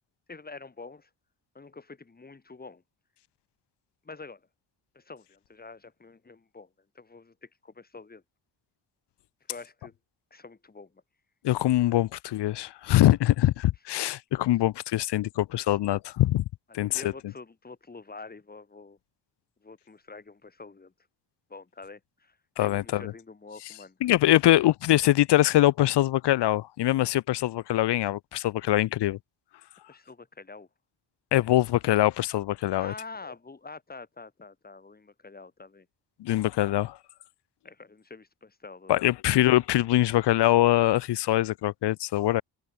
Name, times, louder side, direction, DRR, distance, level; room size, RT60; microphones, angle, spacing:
voice 1, 0.3-1.1 1.6-2.8 4.1-4.4 5.0-6.7 7.0-8.2 9.5-9.9 10.3-11.0 16.8-19.0 19.6-20.9 21.5-24.0 29.9-30.7 32.8-35.9 37.6-39.1, left 4 dB, 20° left, 6.7 m, -46 dB
voice 2, 11.4-16.5 16.7-17.1 22.6-23.1 24.0-29.2 31.3-32.9 36.2-37.0 38.9-42.4, left 15 dB, 75° left, 0.8 m, -23 dB
wide cardioid pair, 165°, 42 cm